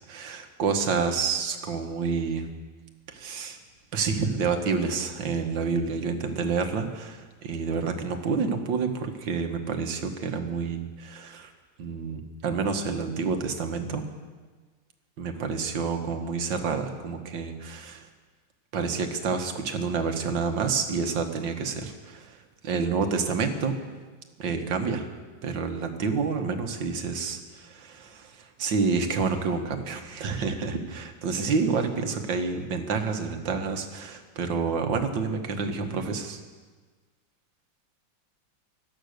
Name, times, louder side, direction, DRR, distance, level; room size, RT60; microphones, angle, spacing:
voice 1, 0.1-2.5 3.1-3.6 3.9-11.5 11.8-14.1 15.2-18.1 18.7-22.4 22.6-23.8 24.4-25.1 25.4-36.4, right 5 dB, 70° right, 6 dB, 2.0 m, -28 dB
17.0 x 12.5 x 6.6 m, 1.4 s
omnidirectional pair, 2.1 m